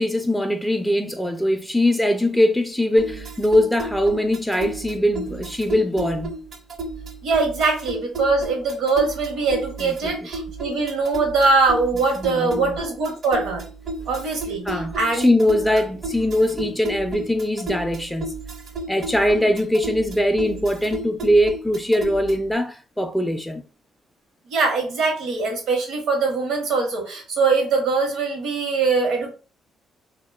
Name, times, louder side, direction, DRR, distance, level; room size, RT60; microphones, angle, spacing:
voice 1, 0.0-6.4 9.8-10.1 12.2-12.7 14.6-18.3 18.9-23.7, left 1 dB, 5° left, 0.3 m, -21 dB
sound 1, 3.0-22.5, right 2 dB, 55° right, 0.5 m, -34 dB
voice 2, 7.2-13.6 14.1-15.3 15.7-15.8 24.5-29.3, right 4 dB, 80° right, 0.9 m, -22 dB
2.5 x 2.1 x 2.3 m
cardioid pair, 90°, 0 cm